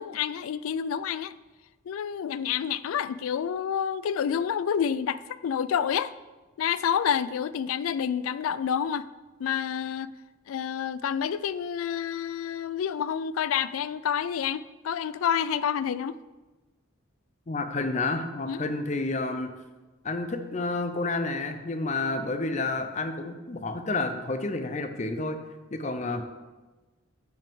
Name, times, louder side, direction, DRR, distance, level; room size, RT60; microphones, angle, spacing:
voice 1, 0.0-1.4 1.9-6.1 6.6-9.1 9.4-10.1 10.5-16.2 18.5-18.7, left 8 dB, 85° left, 16 dB, 0.3 m, -28 dB
voice 2, 17.5-19.5 20.0-25.4 25.7-26.2, left 3 dB, 35° left, 8 dB, 0.6 m, -30 dB
10.5 x 5.5 x 3.6 m, 1.2 s
head